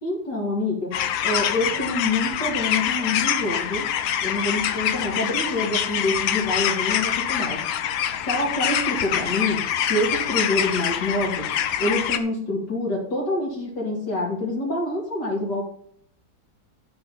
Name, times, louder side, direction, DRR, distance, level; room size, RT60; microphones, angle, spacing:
voice 1, 0.0-0.9 1.2-3.9 4.2-7.6 8.1-11.5 11.8-15.6, left 2 dB, 60° left, -2 dB, 3.1 m, -26 dB
sound 1, 0.9-12.2, left 10 dB, 85° left, 1.6 m, -25 dB
12.5 x 5.5 x 5.6 m, 0.64 s
omnidirectional pair, 2.1 m